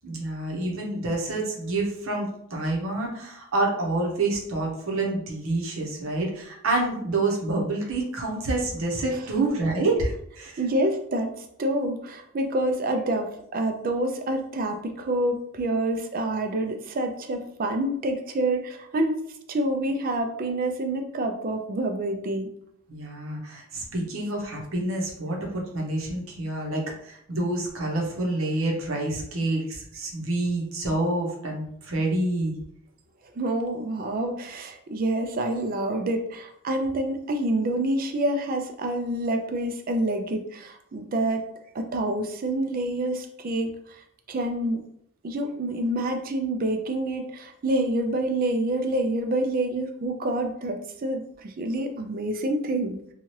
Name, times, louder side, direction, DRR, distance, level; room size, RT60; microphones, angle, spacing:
voice 1, 0.0-10.6 22.9-32.5, right 2 dB, 65° right, -1 dB, 0.8 m, -28 dB
voice 2, 10.6-19.2 19.5-22.5 33.3-41.4 41.7-44.0 44.3-44.8 45.2-53.0, right 1 dB, 40° right, 5 dB, 0.4 m, -27 dB
2.8 x 2.3 x 3.0 m, 0.73 s
head